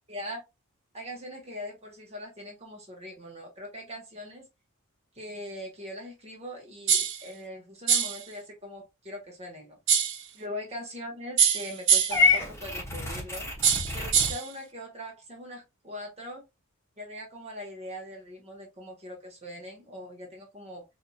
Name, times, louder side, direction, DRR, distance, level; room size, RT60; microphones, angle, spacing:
voice 1, 0.1-0.4 0.9-4.4 5.1-9.8 10.3-13.5 13.9-16.4 17.0-20.8, left 1 dB, 30° right, 1.2 m, -41 dB
sound 1, 6.9-7.2 7.9-8.2 9.9-10.2 11.4-12.3 13.6-14.5, right 8 dB, 55° right, 0.6 m, -23 dB
Purr / Meow, 12.1-14.3, left 4 dB, 10° left, 0.9 m, -27 dB
4.1 x 2.8 x 2.3 m
head